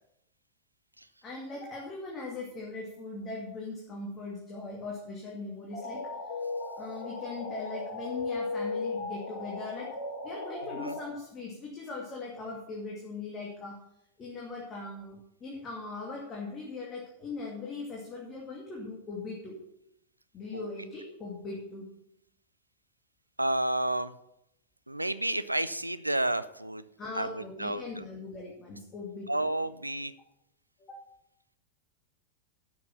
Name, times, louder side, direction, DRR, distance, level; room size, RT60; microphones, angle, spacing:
voice 1, 1.2-6.0 6.8-9.9 10.2-13.8 14.2-19.6 20.3-21.9 27.0-29.3 30.9-31.0, left 3 dB, 25° left, -2 dB, 2.3 m, -40 dB
sound 1, 5.7-11.0, left 3 dB, 55° left, 4.2 m, -36 dB
voice 2, 23.4-24.1 24.9-26.9 27.2-27.8 29.3-30.1, right 1 dB, 85° right, 13 dB, 0.5 m, -30 dB
11.5 x 7.1 x 5.8 m, 0.81 s
figure-of-eight pair, 90°, 0 cm